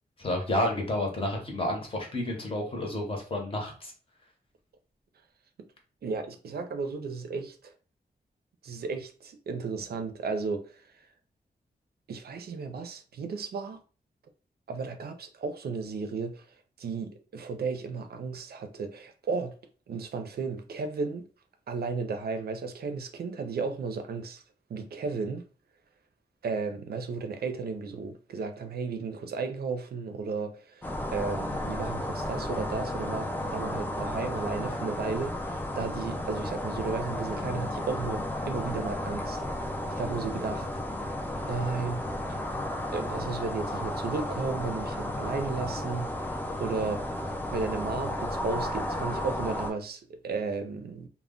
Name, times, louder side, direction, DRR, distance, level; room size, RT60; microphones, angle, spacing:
voice 1, 0.2-3.9, left 1 dB, 35° left, 0.8 m, -30 dB
voice 2, 6.0-7.7 8.6-10.8 12.1-13.8 14.7-16.5 16.8-19.5 19.9-21.3 21.7-24.4 24.7-25.4 26.4-39.5 40.0-41.0 41.5-42.0 42.3-42.4 42.9-47.0 47.5-51.1, right 4 dB, 70° right, 0.4 m, -34 dB
sound 1, 30.8-49.7, left 1 dB, 10° left, 0.4 m, -33 dB
2.1 x 2.0 x 3.6 m
wide cardioid pair, 175°, 17 cm